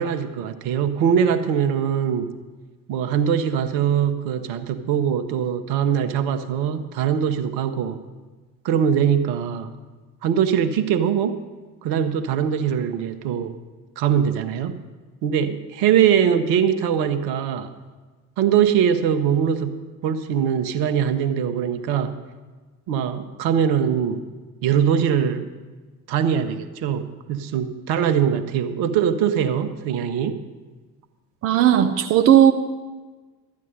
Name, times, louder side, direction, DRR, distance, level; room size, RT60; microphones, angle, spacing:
voice 1, 0.0-2.3 2.9-8.0 8.6-9.7 10.2-11.4 11.8-13.6 14.0-14.8 15.2-17.7 18.4-22.2 22.9-24.2 24.6-25.5 26.1-30.4, right 8 dB, 50° right, 10 dB, 0.9 m, -22 dB
voice 2, 31.4-32.5, right 10 dB, 30° right, 7 dB, 0.5 m, -15 dB
12.5 x 9.5 x 5.3 m, 1.3 s
figure-of-eight pair, 60°, 50 cm